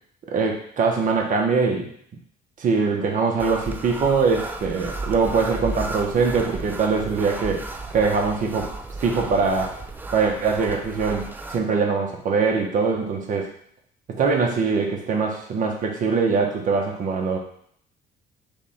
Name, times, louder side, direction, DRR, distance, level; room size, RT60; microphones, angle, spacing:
voice 1, 0.3-1.9 2.6-7.6 7.9-8.7 9.0-9.8 10.1-11.2 11.5-13.5 14.2-17.4, right 4 dB, 50° right, 1 dB, 1.0 m, -22 dB
sound 1, 3.4-11.6, right 2 dB, 10° right, 0.4 m, -34 dB
3.4 x 3.2 x 4.2 m, 0.63 s
cardioid pair, 110°, 17 cm